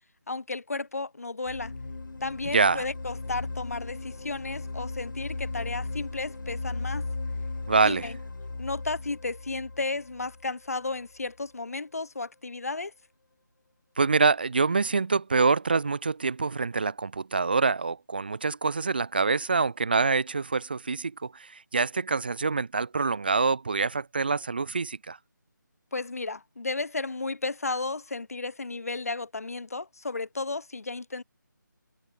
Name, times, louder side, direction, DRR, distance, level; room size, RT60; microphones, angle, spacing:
voice 1, 0.3-1.7 2.2-7.1 7.8-8.2 8.6-12.9 25.9-31.2, left 3 dB, 50° left, 1.7 m, -33 dB
sound 1, 1.5-11.3, left 3 dB, 70° left, 1.6 m, -37 dB
voice 2, 2.5-2.8 7.7-8.1 14.0-25.2, right 4 dB, 30° right, 1.8 m, -25 dB
figure-of-eight pair, 180°, 11 cm